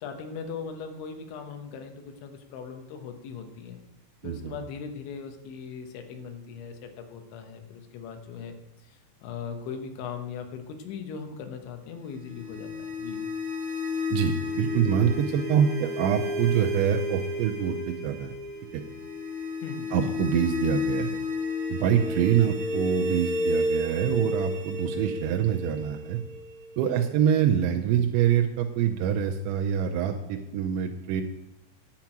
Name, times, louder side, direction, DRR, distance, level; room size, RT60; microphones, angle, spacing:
voice 1, 0.0-3.8 4.2-8.6 8.8-13.2 19.6-20.1 26.8-27.0, left 6 dB, 75° left, 6 dB, 3.2 m, -39 dB
sound 1, 12.1-27.0, left 2 dB, 5° left, 1.0 m, -31 dB
voice 2, 14.1-18.3 18.7-18.8 19.9-21.2 21.7-26.2 26.8-31.2, right 9 dB, 85° right, 2 dB, 2.7 m, -25 dB
10.5 x 6.0 x 8.8 m, 1.0 s
omnidirectional pair, 6.0 m